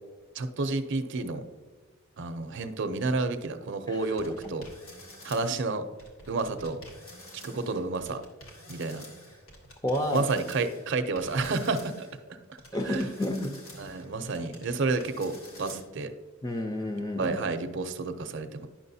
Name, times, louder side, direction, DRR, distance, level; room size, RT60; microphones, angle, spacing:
voice 1, 0.3-1.4 2.2-4.6 5.2-5.9 6.3-6.8 7.3-8.2 8.7-9.0 10.1-12.6 12.9-13.0 13.8-16.1 17.2-18.7, right 3 dB, 55° right, 8 dB, 0.6 m, -30 dB
adding machine, 4.2-5.7 6.0-12.2 12.6-15.8, left 1 dB, 70° left, 1.8 m, -49 dB
voice 2, 9.8-10.2 12.7-13.6 14.2-14.5 16.4-17.4, left 1 dB, 15° left, 5 dB, 0.5 m, -30 dB
10.0 x 6.1 x 2.7 m, 1.4 s
head